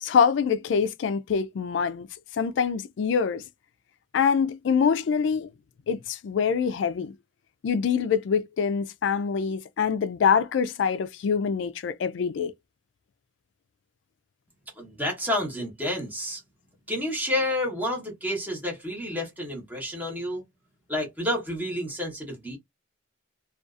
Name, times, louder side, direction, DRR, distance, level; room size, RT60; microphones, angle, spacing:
voice 1, 0.0-2.1 2.4-3.4 4.1-5.5 5.9-7.1 7.6-12.5, left 6 dB, 60° left, 0.3 m, -25 dB
voice 2, 14.8-16.4 16.9-20.4 20.9-22.6, left 1 dB, 10° right, 1.0 m, -30 dB
2.5 x 2.3 x 2.4 m
head